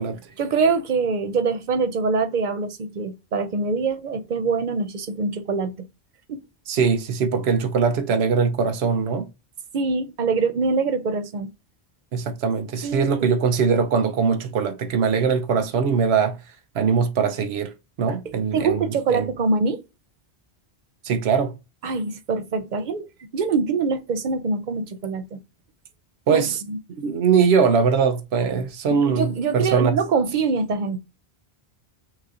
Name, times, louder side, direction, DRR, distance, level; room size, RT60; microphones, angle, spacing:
voice 1, 0.4-5.7 6.3-6.4 9.7-11.5 12.8-13.3 18.5-19.8 21.8-23.1 23.3-25.4 26.3-26.8 28.9-31.0, right 4 dB, 55° right, 0.7 m, -24 dB
voice 2, 6.7-9.3 12.1-16.4 16.7-17.7 18.0-19.3 21.0-21.5 26.3-26.6 26.9-29.9, right 6 dB, 85° right, 0.9 m, -21 dB
5.9 x 2.8 x 2.5 m
omnidirectional pair, 1.0 m